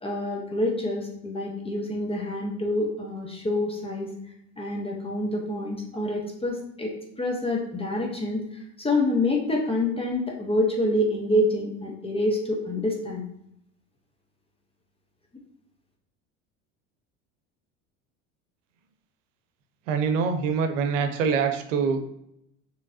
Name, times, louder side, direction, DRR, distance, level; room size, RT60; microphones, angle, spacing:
voice 1, 0.0-4.1 4.6-6.9 7.2-13.3, left 1 dB, 15° left, 0 dB, 0.9 m, -27 dB
voice 2, 19.9-22.1, right 5 dB, 90° right, 7 dB, 0.7 m, -24 dB
5.0 x 3.1 x 2.7 m, 0.77 s
supercardioid pair, 95°, 37 cm